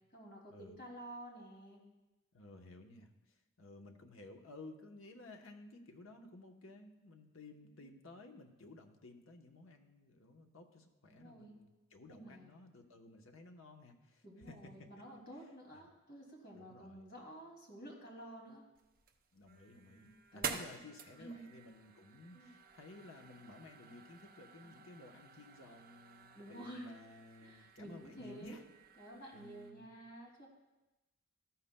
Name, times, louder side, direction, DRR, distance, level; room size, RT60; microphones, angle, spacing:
voice 1, 0.1-1.8 11.1-11.5 12.1-12.5 14.2-18.6 19.9-20.8 21.2-21.5 22.3-22.5 24.6-24.7 26.3-26.9 27.4-28.6 29.0-30.5, right 1 dB, 45° left, -2 dB, 2.4 m, -51 dB
voice 2, 2.3-14.9 15.7-15.9 16.5-17.1 19.3-28.6 29.3-29.9, left 2 dB, 75° left, 4 dB, 1.0 m, -55 dB
sound 1, 18.7-29.7, right 6 dB, 45° right, 0.7 m, -50 dB
14.0 x 11.5 x 2.2 m, 1.1 s
head